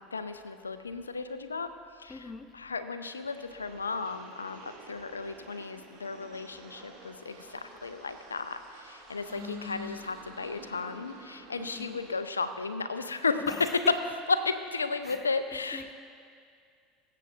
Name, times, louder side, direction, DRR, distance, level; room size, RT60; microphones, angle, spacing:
voice 1, 0.0-1.7 2.0-2.2 2.5-13.7 14.4-15.9, left 4 dB, 85° left, 10 dB, 0.5 m, -35 dB
voice 2, 2.1-2.5 9.3-10.1 11.6-12.0 13.4-13.9 15.0-15.9, left 5 dB, 25° left, 10 dB, 0.6 m, -42 dB
sound 1, 3.1-12.2, right 3 dB, 55° right, 2.4 m, -51 dB
22.0 x 7.6 x 2.5 m, 2.2 s
figure-of-eight pair, 75°, 0 cm